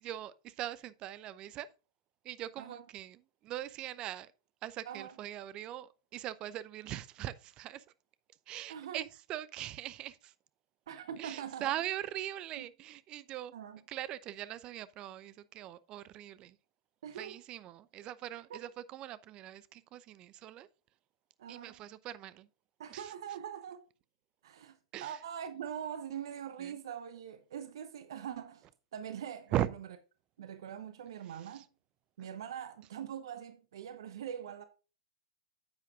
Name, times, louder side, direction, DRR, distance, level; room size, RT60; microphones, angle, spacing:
voice 1, 0.0-1.7 2.2-4.3 4.6-7.8 8.5-10.3 11.2-13.5 13.9-16.6 17.1-20.7 21.5-22.5 22.9-23.1 24.9-25.2 26.6-26.7 29.5-29.7 31.5-31.6, right 13 dB, 35° right, 0.7 m, -40 dB
voice 2, 8.7-9.0 10.9-11.7 12.6-12.7 13.5-13.8 17.0-17.4 18.5-18.6 21.4-21.8 22.8-23.8 24.4-28.7 28.9-29.6 30.4-31.6 32.2-34.6, right 9 dB, 65° right, 0.9 m, -43 dB
9.6 x 8.4 x 2.5 m
figure-of-eight pair, 100°, 3 cm